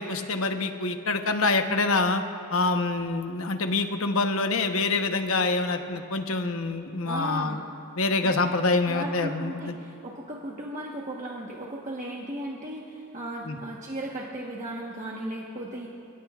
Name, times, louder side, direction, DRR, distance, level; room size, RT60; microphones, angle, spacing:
voice 1, 0.0-2.2 2.5-7.6 8.0-9.7 13.5-13.6, left 3 dB, 65° left, 6 dB, 1.0 m, -26 dB
voice 2, 7.0-7.6 8.2-8.3 8.9-15.9, right 1 dB, 35° right, -3 dB, 1.2 m, -36 dB
29.0 x 16.5 x 2.4 m, 2.6 s
head